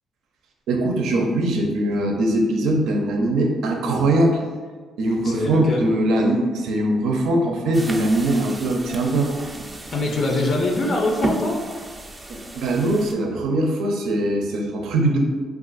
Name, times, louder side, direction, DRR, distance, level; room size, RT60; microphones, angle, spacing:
voice 1, 0.7-4.4 5.0-9.3 12.3-15.2, right 1 dB, 80° right, 2 dB, 0.5 m, -21 dB
voice 2, 5.2-5.9 9.9-11.6, left 2 dB, 50° left, 0 dB, 0.5 m, -23 dB
sound 1, 7.7-13.1, right 1 dB, 20° right, 0.4 m, -33 dB
2.4 x 2.4 x 3.9 m, 1.5 s
cardioid pair, 90°, 0 cm